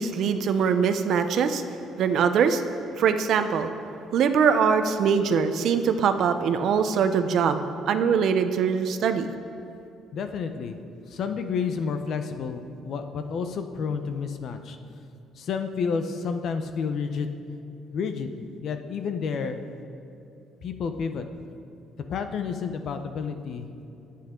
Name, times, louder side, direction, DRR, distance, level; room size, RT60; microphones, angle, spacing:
voice 1, 0.0-1.6 2.0-2.6 3.0-3.7 4.1-9.3, right 6 dB, 65° right, 8 dB, 0.7 m, -22 dB
voice 2, 10.1-10.8 11.1-14.8 15.4-17.3 17.9-18.3 18.6-19.6 20.6-21.2 22.1-23.7, left 5 dB, 60° left, 7 dB, 0.8 m, -30 dB
25.5 x 8.5 x 3.8 m, 2.6 s
cardioid pair, 110°, 0 cm